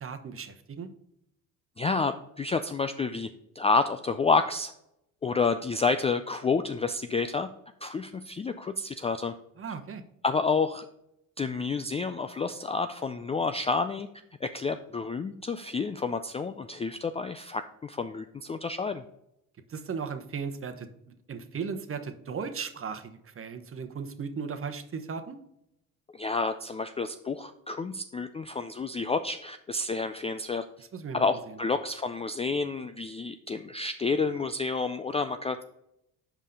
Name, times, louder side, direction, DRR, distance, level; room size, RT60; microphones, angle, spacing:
voice 1, 0.0-0.9 9.6-10.0 19.7-25.4 30.8-31.6, right 6 dB, 35° right, 8 dB, 1.0 m, -37 dB
voice 2, 1.8-3.3 3.6-4.7 5.2-7.5 7.8-9.3 10.2-10.9 11.4-14.1 14.4-19.0 26.1-30.6 31.1-35.6, left 4 dB, 15° left, 9 dB, 0.3 m, -29 dB
5.5 x 5.0 x 5.3 m, 0.80 s
hypercardioid pair, 65°, 39 cm